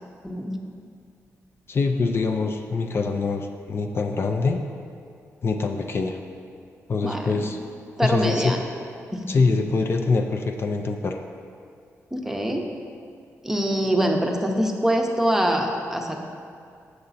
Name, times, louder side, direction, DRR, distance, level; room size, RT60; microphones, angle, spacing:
voice 1, 1.7-4.6 5.4-6.2 6.9-7.6 8.0-8.5 9.3-11.2, left 4 dB, 45° left, 4 dB, 0.4 m, -24 dB
voice 2, 8.0-8.6 9.1-9.3 12.1-12.6 13.4-16.2, equal, 5° right, 2 dB, 0.7 m, -24 dB
6.8 x 6.5 x 4.1 m, 2.4 s
cardioid pair, 95°, 6 cm